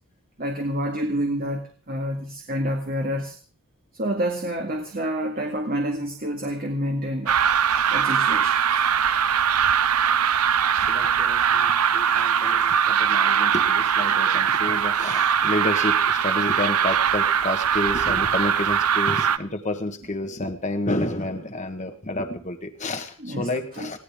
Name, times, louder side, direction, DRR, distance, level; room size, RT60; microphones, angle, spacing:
voice 1, 0.4-3.4 3.9-7.4 7.9-8.8 12.2-12.5 12.8-13.0 14.4-14.6 23.2-23.5 23.7-24.0, equal, 40° right, 2 dB, 2.0 m, -28 dB
sound 1, 7.3-19.4, right 8 dB, 85° right, 0.8 m, -21 dB
voice 2, 10.8-24.0, left 1 dB, 35° left, 5 dB, 1.4 m, -30 dB
20.5 x 16.5 x 3.7 m, 0.40 s
head